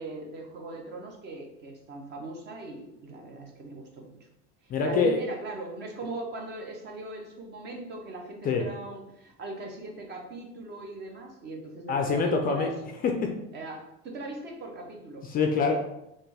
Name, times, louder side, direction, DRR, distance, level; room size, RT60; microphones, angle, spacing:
voice 1, 0.0-4.1 4.6-12.7 13.5-15.3, right 2 dB, 35° right, 1 dB, 0.8 m, -39 dB
voice 2, 4.7-5.2 8.4-8.7 11.9-12.7 13.0-13.3 15.2-15.7, left 5 dB, 30° left, 3 dB, 0.4 m, -25 dB
4.1 x 2.5 x 3.4 m, 0.85 s
cardioid pair, 145°, 29 cm